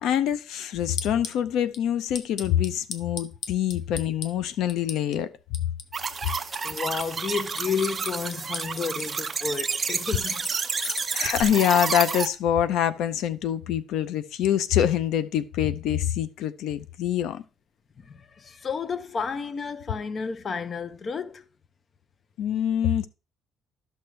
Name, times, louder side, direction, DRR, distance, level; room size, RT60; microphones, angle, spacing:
voice 1, 0.0-5.3 11.1-17.4 22.4-23.1, left 10 dB, 75° left, 0.5 m, -25 dB
sound 1, 0.8-1.4 1.7-1.8 2.1-4.3 4.7-5.1 5.5-7.1 7.3-9.1 10.0-11.4, left 5 dB, 55° left, 1.0 m, -36 dB
sound 2, 5.9-12.3, right 5 dB, 25° right, 0.6 m, -30 dB
voice 2, 6.6-10.4 18.0-21.5, left 5 dB, 30° left, 0.5 m, -31 dB
12.5 x 6.2 x 3.2 m
cardioid pair, 170°, 0 cm